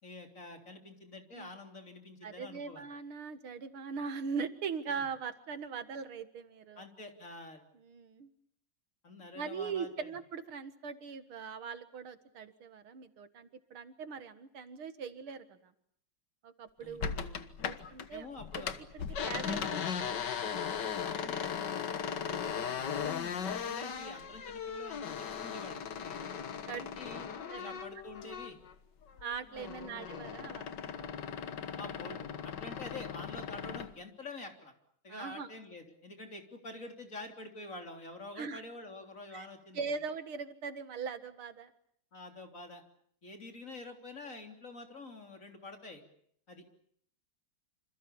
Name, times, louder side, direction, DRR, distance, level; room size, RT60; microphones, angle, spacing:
voice 1, 0.0-2.8 4.9-5.1 6.8-7.6 9.0-10.1 16.8-17.5 18.0-18.8 21.0-21.4 22.0-26.2 26.6-27.3 27.6-28.6 29.6-29.7 31.8-34.7 35.0-39.9 42.1-42.8 43.2-46.0 46.5-46.6, left 2 dB, 35° left, 4 dB, 3.8 m, -47 dB
voice 2, 2.2-6.9 7.7-8.3 9.3-15.7 16.4-17.3 17.6-18.3 18.6-18.7 18.9-20.9 22.5-22.7 26.3-26.9 27.5-27.9 29.2-31.1 35.1-35.5 38.4-38.6 39.3-39.5 39.7-41.7, right 5 dB, 75° right, 11 dB, 2.5 m, -41 dB
sound 1, 17.0-18.1 18.4-28.7 29.1-33.9, left 7 dB, 55° left, 2.0 m, -38 dB
27.5 x 27.5 x 7.1 m, 0.65 s
omnidirectional pair, 2.3 m